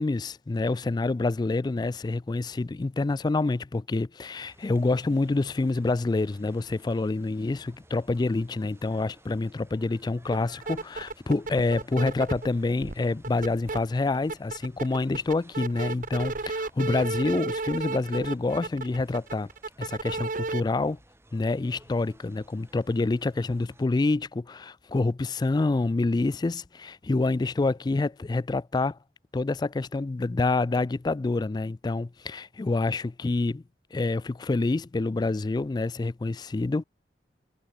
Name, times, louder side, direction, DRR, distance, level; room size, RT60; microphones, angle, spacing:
voice 1, 0.0-19.5 19.8-21.0 21.3-29.0 29.3-33.6 33.9-36.8, left 3 dB, 25° left, 0.3 m, -27 dB
sound 1, 4.3-23.9, right 1 dB, 15° right, 6.8 m, -57 dB
sound 2, 10.3-10.4 10.6-12.5 12.8-13.8 14.1-20.6, right 3 dB, 50° right, 1.1 m, -33 dB
head